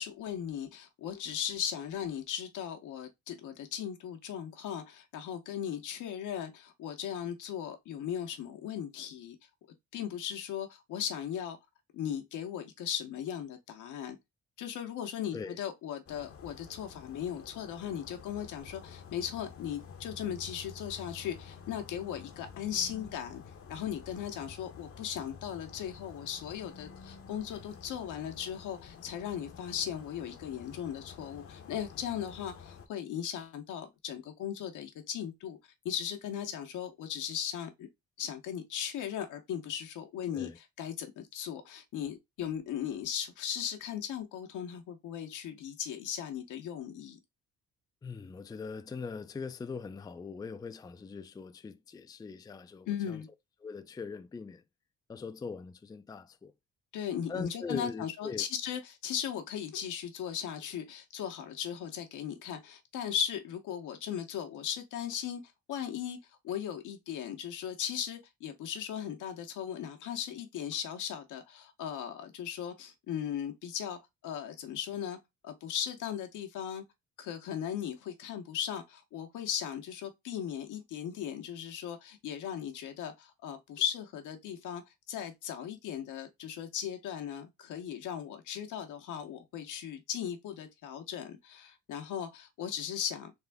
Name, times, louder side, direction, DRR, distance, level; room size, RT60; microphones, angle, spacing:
voice 1, 0.0-9.4 9.9-11.6 11.9-14.2 14.6-23.4 23.7-35.6 35.8-37.9 38.2-47.2 52.9-53.3 56.9-65.4 65.7-66.2 66.4-75.2 75.4-76.8 77.2-84.8 85.1-93.3, left 9 dB, 80° left, 0.9 m, -37 dB
sound 1, 16.1-32.9, left 6 dB, 50° left, 0.7 m, -50 dB
voice 2, 48.0-53.2 53.6-54.6 55.1-56.5 57.3-58.5, left 5 dB, 15° left, 0.3 m, -41 dB
3.5 x 2.5 x 3.5 m
cardioid pair, 90°, 30 cm